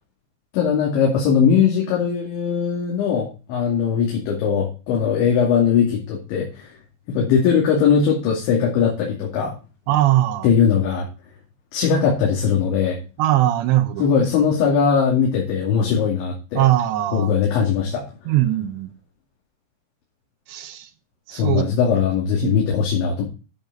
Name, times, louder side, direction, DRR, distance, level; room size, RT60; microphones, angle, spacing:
voice 1, 0.5-6.7 7.1-9.5 10.4-11.1 11.7-13.0 14.0-16.6 17.1-18.0 21.3-23.2, left 7 dB, 75° left, 4.8 m, -20 dB
voice 2, 9.9-10.5 13.2-14.0 16.5-17.3 18.3-18.9 20.5-20.9 21.3-21.7 22.4-22.6, right 14 dB, 75° right, 3.1 m, -20 dB
12.0 x 7.0 x 4.0 m
omnidirectional pair, 5.4 m